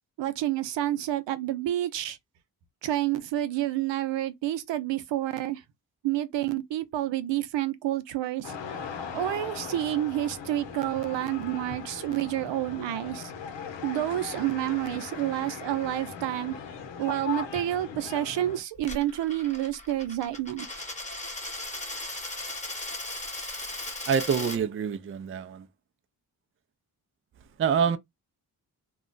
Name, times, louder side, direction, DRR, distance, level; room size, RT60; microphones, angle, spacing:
voice 1, 0.2-2.2 2.8-5.6 6.0-8.5 9.1-13.3 13.8-16.5 17.0-20.7, right 13 dB, 90° right, 0.6 m, -29 dB
sound 1, 8.4-18.6, left 6 dB, 85° left, 0.8 m, -39 dB
Coin (dropping), 18.8-24.6, left 2 dB, 15° left, 1.0 m, -37 dB
voice 2, 24.1-25.7 27.6-28.0, right 7 dB, 30° right, 0.4 m, -26 dB
2.3 x 2.0 x 3.8 m
cardioid pair, 60°, 42 cm